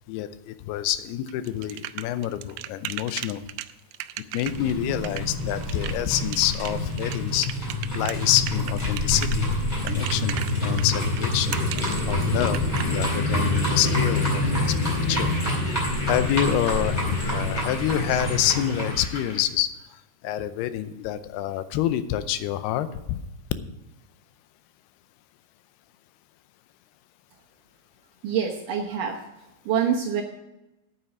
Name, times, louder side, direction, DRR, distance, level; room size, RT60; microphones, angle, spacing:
voice 1, 0.1-3.4 4.3-7.5 7.9-11.6 12.1-14.4 14.8-15.3 16.1-19.7 20.2-23.2, left 12 dB, 90° left, 12 dB, 2.7 m, -27 dB
sound 1, 1.3-12.8, right 14 dB, 90° right, 1.9 m, -36 dB
sound 2, 4.4-18.9, left 1 dB, 10° left, 3.7 m, -26 dB
sound 3, 12.8-19.4, left 2 dB, 35° left, 3.2 m, -40 dB
voice 2, 28.2-29.2 29.7-30.2, right 7 dB, 70° right, 0 dB, 2.3 m, -25 dB
9.1 x 8.9 x 6.8 m, 0.95 s
omnidirectional pair, 4.5 m